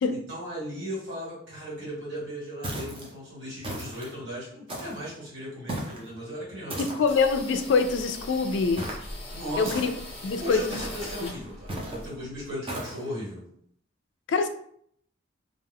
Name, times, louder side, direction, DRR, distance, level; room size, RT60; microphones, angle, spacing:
voice 1, 0.1-6.8 9.3-9.8 10.4-13.4, equal, 65° right, -6 dB, 1.5 m, -36 dB
sound 1, 2.6-3.1 3.6-4.1 4.7-5.1 5.7-6.1 6.7-7.2 8.8-9.1 9.6-10.2 10.7-11.1 11.7-12.1 12.7-13.0, right 1 dB, 25° right, 0.5 m, -36 dB
voice 2, 6.8-8.9 9.6-9.9 10.2-10.8 11.2-11.3 14.3-14.5, left 4 dB, 65° left, 8 dB, 0.3 m, -24 dB
sound 2, 7.1-12.5, left 1 dB, 30° left, 0.6 m, -41 dB
2.4 x 2.2 x 3.5 m, 0.65 s
head